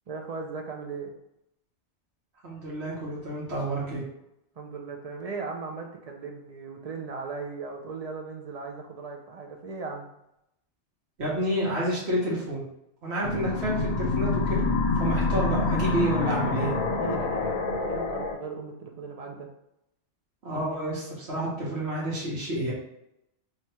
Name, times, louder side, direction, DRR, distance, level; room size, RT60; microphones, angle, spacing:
voice 1, 0.1-1.1 4.6-10.1 17.0-19.5, right 4 dB, 50° right, 1 dB, 0.4 m, -37 dB
voice 2, 2.4-4.0 11.2-12.6 13.0-14.6 15.0-16.7 20.4-22.7, right 1 dB, 70° right, -5 dB, 1.4 m, -29 dB
sound 1, 13.2-18.3, left 3 dB, 55° left, 0.5 m, -27 dB
3.1 x 2.3 x 4.1 m, 0.81 s
omnidirectional pair, 1.2 m